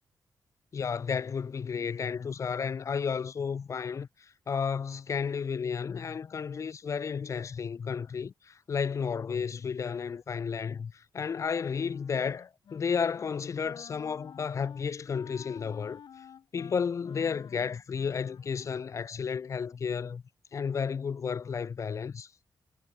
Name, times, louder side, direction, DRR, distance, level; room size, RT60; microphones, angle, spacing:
voice 1, 0.7-16.0 16.5-20.2 20.5-22.3, left 6 dB, 40° left, 0.4 m, -32 dB
Wind instrument woodwind instrument, 11.7-12.8 13.1-13.4 13.6-18.9, left 8 dB, 65° left, 0.7 m, -52 dB
wide cardioid pair, 125°, 8 cm